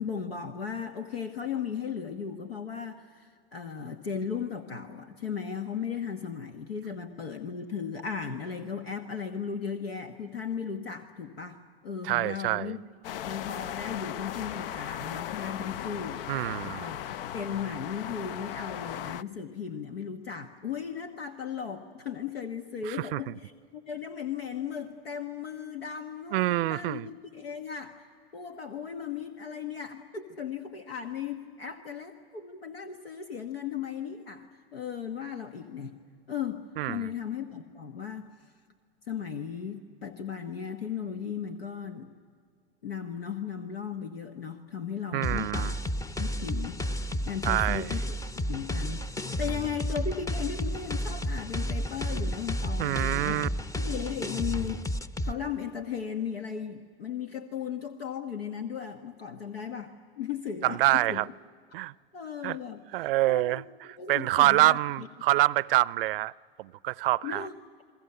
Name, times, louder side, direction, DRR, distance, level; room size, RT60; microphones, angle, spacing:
voice 1, 0.0-12.8 13.2-16.2 16.6-28.0 28.3-35.9 36.3-38.3 39.1-42.1 42.8-45.7 46.2-46.8 47.2-48.2 48.4-49.0 49.4-53.5 53.7-54.9 55.2-61.2 62.1-62.8 63.3-65.1 67.2-67.5, left 7 dB, 90° left, 1.4 m, -36 dB
voice 2, 12.0-12.7 16.3-16.9 22.8-23.4 26.3-27.1 36.8-37.1 45.1-45.8 47.4-47.9 52.8-53.5 60.6-61.3 61.7-61.9 62.4-62.6 62.9-63.6 64.1-66.3 66.6-67.5, right 17 dB, 70° right, 0.5 m, -26 dB
sound 1, 13.0-19.2, left 11 dB, 70° left, 0.6 m, -37 dB
sound 2, 45.2-55.3, equal, 10° left, 0.7 m, -32 dB
29.5 x 22.0 x 6.8 m
hypercardioid pair, 100°, 29 cm